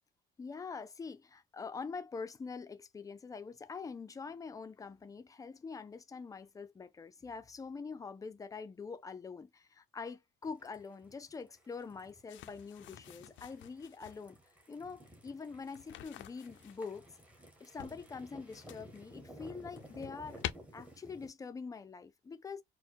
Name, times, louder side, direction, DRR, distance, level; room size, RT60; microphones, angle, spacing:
voice 1, 0.4-14.4 14.7-17.1 17.6-20.4 20.7-22.6, left 5 dB, 15° left, 0.4 m, -45 dB
sound 1, 10.4-21.3, right 1 dB, 5° right, 0.9 m, -55 dB
sound 2, 12.3-14.3 15.6-17.0 17.8-19.0 19.5-20.5, left 13 dB, 75° left, 0.5 m, -47 dB
4.2 x 2.1 x 4.5 m
cardioid pair, 175°, 20 cm